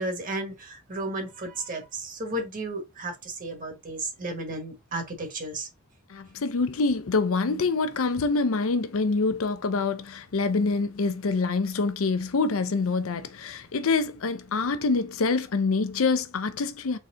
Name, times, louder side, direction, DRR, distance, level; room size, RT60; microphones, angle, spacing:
voice 1, 0.0-5.7, right 2 dB, 40° right, 1.3 m, -33 dB
voice 2, 6.1-17.0, left 4 dB, 70° left, 0.6 m, -26 dB
4.1 x 3.3 x 3.7 m
head